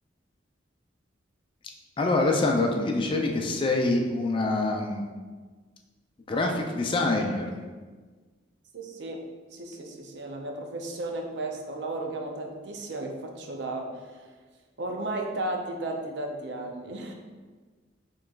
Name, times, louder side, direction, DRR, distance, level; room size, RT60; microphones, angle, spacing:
voice 1, 2.0-5.0 6.3-7.6, left 2 dB, 25° left, 2 dB, 0.4 m, -25 dB
voice 2, 8.7-9.2 9.5-14.3 14.8-17.1, right 2 dB, 65° right, 2 dB, 0.6 m, -34 dB
6.6 x 3.0 x 2.4 m, 1.4 s
head